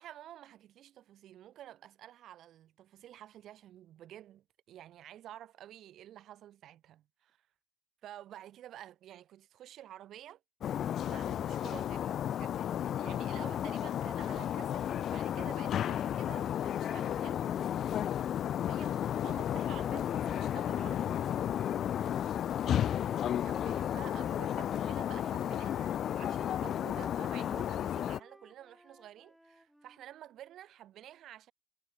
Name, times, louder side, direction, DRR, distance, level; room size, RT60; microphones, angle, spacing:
voice 1, 0.0-7.4 8.0-10.4 10.9-12.6 13.0-17.9 18.7-21.2 22.0-22.3 22.7-23.0 23.4-31.5, right 12 dB, 75° right, 1.6 m, -51 dB
sound 1, 10.6-28.2, left 10 dB, 70° left, 0.3 m, -33 dB
Wind instrument woodwind instrument, 19.4-24.4 25.1-30.1, equal, 5° right, 7.1 m, -59 dB
cardioid pair, 90°, 0 cm